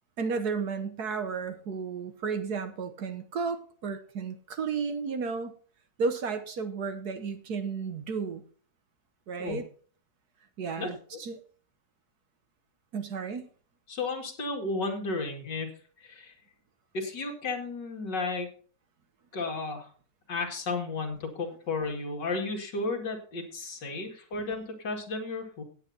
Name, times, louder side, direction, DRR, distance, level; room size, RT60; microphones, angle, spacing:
voice 1, 0.2-5.5 6.0-8.4 9.3-9.7 10.6-11.4 12.9-13.5, right 5 dB, 60° right, 9 dB, 1.4 m, -33 dB
voice 2, 13.9-15.7 16.0-16.3 16.9-18.5 19.3-19.9 20.3-25.6, left 3 dB, 65° left, 2 dB, 2.9 m, -33 dB
17.0 x 8.7 x 2.8 m, 0.42 s
omnidirectional pair, 2.1 m